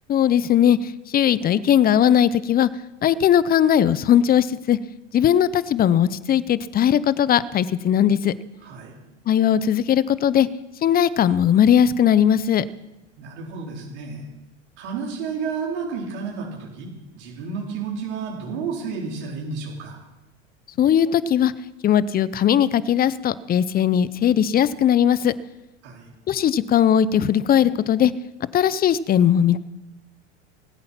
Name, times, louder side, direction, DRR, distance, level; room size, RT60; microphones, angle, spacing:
voice 1, 0.1-2.7 3.0-4.8 5.1-8.3 9.3-10.5 10.8-12.6 20.8-21.5 21.8-25.3 26.3-28.1 28.5-29.6, left 9 dB, 25° left, 18 dB, 0.7 m, -19 dB
voice 2, 8.6-8.9 13.2-14.2 14.8-16.9 17.2-20.0 25.8-26.1, right 5 dB, 70° right, -3 dB, 4.7 m, -31 dB
20.5 x 8.7 x 5.9 m, 1.0 s
hypercardioid pair, 100°, 36 cm